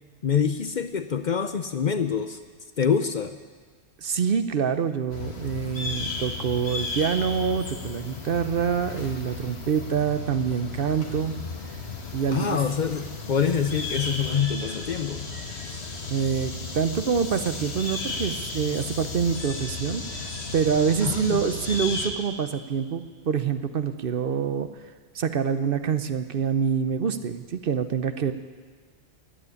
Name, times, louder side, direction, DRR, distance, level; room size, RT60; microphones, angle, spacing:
voice 1, 0.2-2.4 2.8-3.4 12.3-15.3 21.0-21.4, left 7 dB, 50° left, 9 dB, 0.7 m, -25 dB
voice 2, 4.0-11.3 11.7-11.8 12.1-12.6 16.1-24.7 25.1-28.3, right 7 dB, 60° right, 10 dB, 0.9 m, -26 dB
sound 1, 5.1-22.1, left 3 dB, 70° left, 1.7 m, -34 dB
14.0 x 9.4 x 9.8 m, 1.5 s
omnidirectional pair, 1.1 m